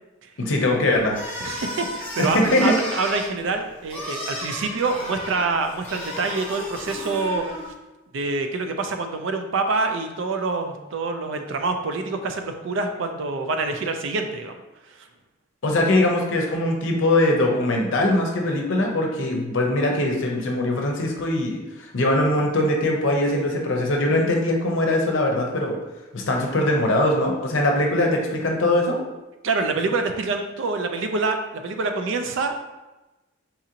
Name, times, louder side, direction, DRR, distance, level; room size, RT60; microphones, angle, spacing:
voice 1, 0.4-1.2 2.2-2.7 15.6-21.6 21.9-25.8 26.1-29.0, left 1 dB, 70° left, 1 dB, 0.6 m, -21 dB
sound 1, 1.1-7.7, left 1 dB, 10° left, 1.0 m, -34 dB
voice 2, 1.4-7.7 8.1-14.5 29.4-32.5, right 3 dB, 65° right, 6 dB, 0.4 m, -26 dB
4.0 x 2.5 x 2.8 m, 1.1 s
head